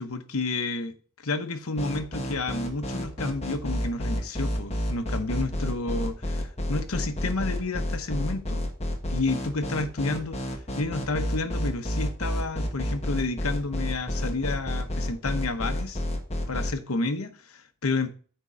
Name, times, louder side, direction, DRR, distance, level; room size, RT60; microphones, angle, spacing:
voice 1, 0.0-8.6 9.1-16.0 16.5-18.1, left 3 dB, 85° left, 0.9 m, -30 dB
sound 1, 1.8-16.7, left 1 dB, 30° left, 1.2 m, -29 dB
9.0 x 3.7 x 5.5 m
head